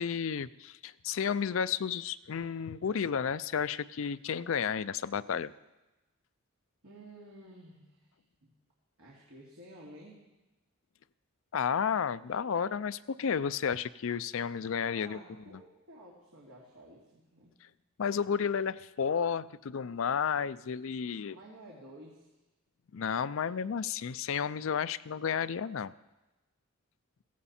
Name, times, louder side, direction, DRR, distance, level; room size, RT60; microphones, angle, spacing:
voice 1, 0.0-5.5 11.5-15.2 15.5-15.6 18.0-21.4 22.9-25.9, left 7 dB, 65° left, 15 dB, 0.4 m, -32 dB
voice 2, 6.8-8.1 8.4-8.6 9.0-10.3 14.8-17.5 21.3-22.3, right 1 dB, 70° right, -4 dB, 2.5 m, -52 dB
16.0 x 15.5 x 4.3 m, 1.1 s
head